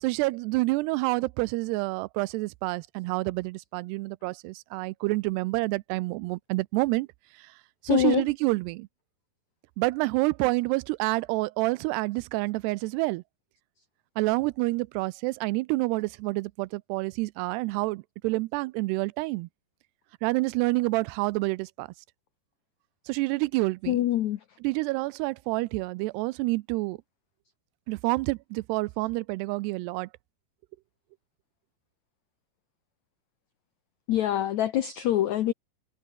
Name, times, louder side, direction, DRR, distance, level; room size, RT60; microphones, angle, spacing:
voice 1, 0.0-7.1 7.8-8.9 9.8-13.2 14.2-19.5 20.2-21.9 23.1-24.0 24.6-27.0 27.9-30.1, right 22 dB, 85° right, 2.7 m, -28 dB
voice 2, 7.9-8.2 23.9-24.4 34.1-35.5, left 12 dB, 85° left, 1.6 m, -25 dB
omnidirectional pair, 4.7 m